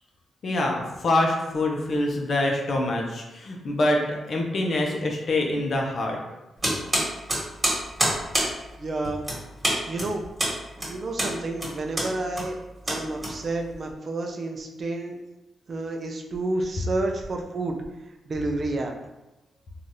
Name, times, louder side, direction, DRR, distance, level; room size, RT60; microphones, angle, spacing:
voice 1, 0.4-6.2, left 1 dB, 60° left, 0 dB, 0.5 m, -25 dB
sound 1, 6.6-13.8, right 1 dB, 25° right, 1.4 m, -28 dB
voice 2, 8.8-9.2 9.9-10.3 10.9-12.6 12.9-15.2 15.7-17.8 18.3-18.9, right 2 dB, 50° right, 3 dB, 0.4 m, -30 dB
3.2 x 2.3 x 2.6 m, 1.0 s
cardioid pair, 75°, 0 cm